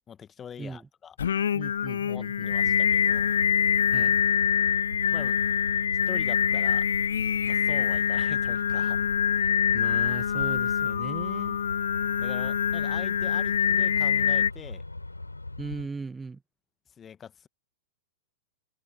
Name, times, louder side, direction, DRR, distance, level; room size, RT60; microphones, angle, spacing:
voice 1, 0.1-1.1 2.1-3.4 5.1-5.3 6.1-6.8 7.5-9.0 9.4-9.5 12.2-14.8 17.0-17.5, left 8 dB, 20° left, 1.4 m, -43 dB
voice 2, 0.6-0.9 1.5-2.8 3.9-4.2 9.7-11.6 15.6-16.4, right 4 dB, 10° right, 1.2 m, -39 dB
Singing, 1.2-14.5, left 8 dB, 70° left, 0.3 m, -25 dB
Truck, 2.5-15.9, left 2 dB, 90° left, 3.3 m, -40 dB
figure-of-eight pair, 100°, 0 cm